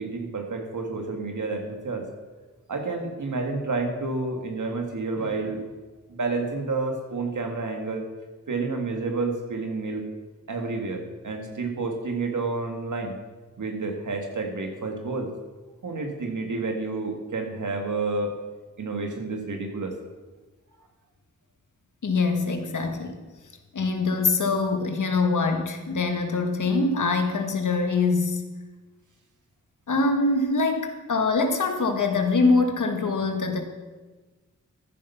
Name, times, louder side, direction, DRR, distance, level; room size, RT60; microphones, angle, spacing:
voice 1, 0.0-2.1 2.7-5.6 6.1-8.0 8.5-10.1 10.5-13.1 13.6-15.3 15.8-18.3 18.8-19.9, right 3 dB, 85° right, 3 dB, 2.0 m, -29 dB
voice 2, 22.0-23.2 23.7-28.4 29.9-33.6, left 3 dB, 85° left, 5 dB, 1.7 m, -24 dB
14.0 x 10.0 x 5.8 m, 1.3 s
cardioid pair, 50°, 30 cm